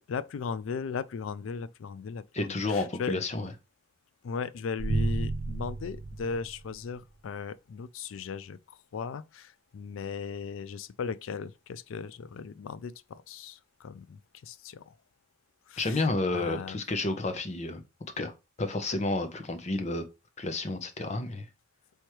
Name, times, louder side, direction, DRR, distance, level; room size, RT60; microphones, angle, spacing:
voice 1, 0.0-3.2 4.2-14.9 15.7-16.0 16.3-16.8, left 5 dB, 90° left, 0.4 m, -37 dB
voice 2, 2.3-3.5 15.8-17.8 18.2-18.3 18.6-20.0 20.4-21.5, left 2 dB, 35° left, 0.7 m, -30 dB
sound 1, 4.8-7.1, right 3 dB, 55° right, 0.4 m, -32 dB
4.5 x 3.4 x 3.0 m
head